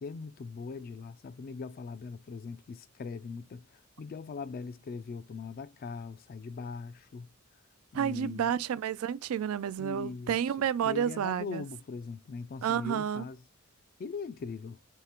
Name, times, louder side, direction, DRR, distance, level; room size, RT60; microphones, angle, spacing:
voice 1, 0.0-3.6 4.0-7.3 7.9-8.5 9.8-13.4 14.0-14.8, left 4 dB, 45° left, 0.3 m, -40 dB
voice 2, 7.9-11.6 12.6-13.2, right 9 dB, 85° right, 0.3 m, -30 dB
3.6 x 3.2 x 4.3 m
head